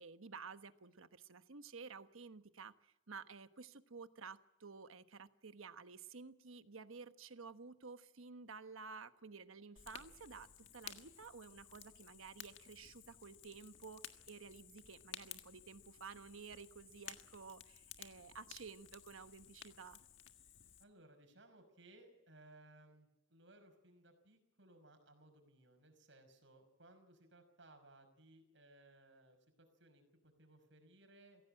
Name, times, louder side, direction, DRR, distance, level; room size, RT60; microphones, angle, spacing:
voice 1, 0.0-10.5 10.7-20.0, right 5 dB, 90° right, 10 dB, 1.2 m, -53 dB
Fire, 9.8-20.8, left 9 dB, 70° left, 1.7 m, -56 dB
voice 2, 20.8-31.4, right 1 dB, 65° right, 6 dB, 5.7 m, -63 dB
24.0 x 16.5 x 8.8 m, 0.92 s
head